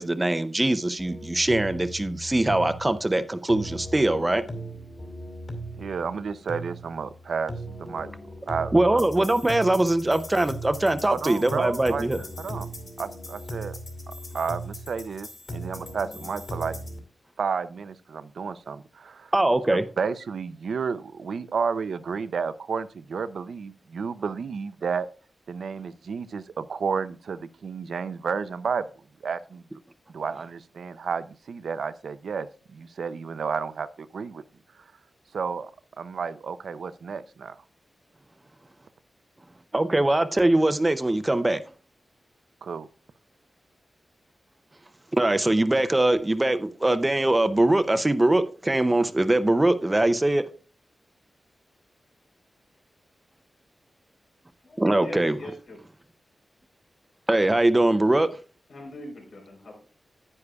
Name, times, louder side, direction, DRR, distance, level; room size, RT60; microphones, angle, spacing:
voice 1, 0.0-4.4 8.7-12.2 19.3-19.8 39.7-41.6 45.2-50.4 54.8-55.4 57.3-58.3, right 1 dB, 15° right, 0.5 m, -22 dB
sound 1, 1.0-17.0, right 1 dB, 40° left, 2.3 m, -38 dB
voice 2, 5.8-7.5 7.8-8.1 8.5-9.0 11.1-12.1 12.4-12.7 13.0-13.8 14.1-16.8 17.4-19.3 19.7-25.1 25.5-28.9 29.2-29.6 30.1-34.4 35.3-35.7 36.0-37.6 42.6-42.9, right 5 dB, 75° right, 0.5 m, -31 dB
voice 3, 54.6-55.9 58.7-59.8, left 1 dB, 75° left, 3.9 m, -41 dB
9.8 x 9.5 x 2.3 m
wide cardioid pair, 140°, 0 cm